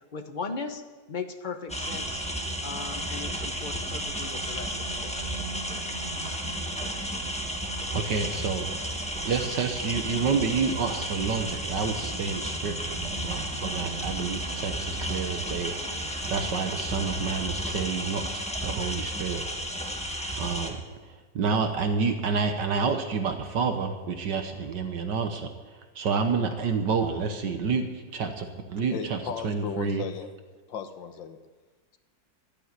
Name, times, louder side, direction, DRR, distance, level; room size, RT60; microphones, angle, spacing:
voice 1, 0.1-0.8 1.1-2.2 2.6-5.3, left 4 dB, 35° left, 7 dB, 0.9 m, -37 dB
sound 1, 1.7-20.7, equal, 5° left, 1.2 m, -33 dB
Race car auto racing, 1.7-18.3, right 5 dB, 40° right, 1.1 m, -44 dB
voice 2, 7.9-8.7 9.2-15.7 16.3-19.4 20.4-25.5 25.9-29.2 29.4-30.0, right 5 dB, 70° right, 7 dB, 1.6 m, -29 dB
voice 3, 28.9-30.3 30.7-31.4, left 6 dB, 75° left, 8 dB, 1.8 m, -36 dB
12.0 x 10.0 x 9.7 m, 1.3 s
omnidirectional pair, 2.0 m